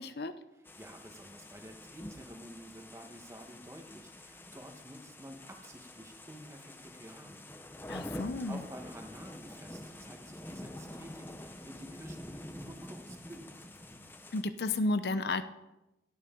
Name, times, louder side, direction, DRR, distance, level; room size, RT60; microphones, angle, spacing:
voice 1, 0.0-0.3 7.9-8.6 14.3-15.4, left 2 dB, 65° left, 11 dB, 0.6 m, -32 dB
voice 2, 0.5-7.5 8.1-13.6, equal, 15° right, 4 dB, 1.2 m, -50 dB
sound 1, 0.6-14.4, left 1 dB, 10° left, 0.7 m, -47 dB
16.5 x 9.4 x 3.8 m, 0.96 s
head